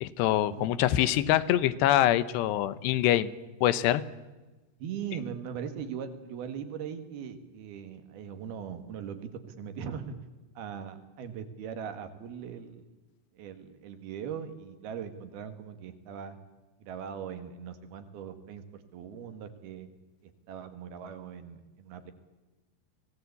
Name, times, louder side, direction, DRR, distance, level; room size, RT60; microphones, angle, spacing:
voice 1, 0.0-3.3 3.6-4.0, left 13 dB, 80° left, 15 dB, 3.0 m, -24 dB
voice 2, 4.8-10.2 10.6-13.0 13.3-16.4 16.8-19.9 20.2-22.1, right 7 dB, 70° right, 9 dB, 3.4 m, -40 dB
25.5 x 18.0 x 8.3 m, 1.2 s
omnidirectional pair, 4.9 m